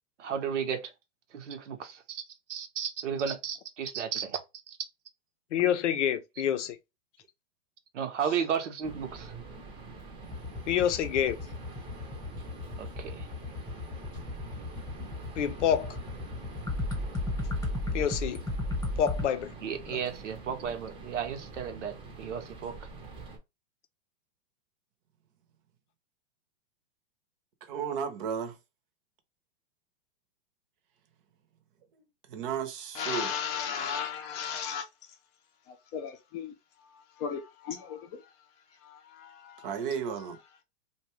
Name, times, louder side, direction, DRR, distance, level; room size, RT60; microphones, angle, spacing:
voice 1, 0.2-0.9 1.3-2.2 2.5-4.4 4.7-4.8 7.9-9.3 12.8-13.3 19.6-22.8, right 7 dB, 80° right, 0.8 m, -34 dB
voice 2, 5.5-6.8 10.7-11.4 15.4-16.0 17.9-18.4 19.0-19.5 19.9-20.0, left 9 dB, 80° left, 0.6 m, -27 dB
sound 1, 8.8-23.4, right 4 dB, 15° right, 0.6 m, -45 dB
sound 2, 10.2-19.2, left 2 dB, 10° left, 0.9 m, -34 dB
voice 3, 27.6-28.6 32.3-33.3 39.6-40.4, right 7 dB, 50° right, 0.7 m, -33 dB
voice 4, 32.9-35.1 35.7-38.3 38.7-39.8, left 7 dB, 30° left, 0.5 m, -36 dB
2.6 x 2.2 x 3.0 m
hypercardioid pair, 130°, 36 cm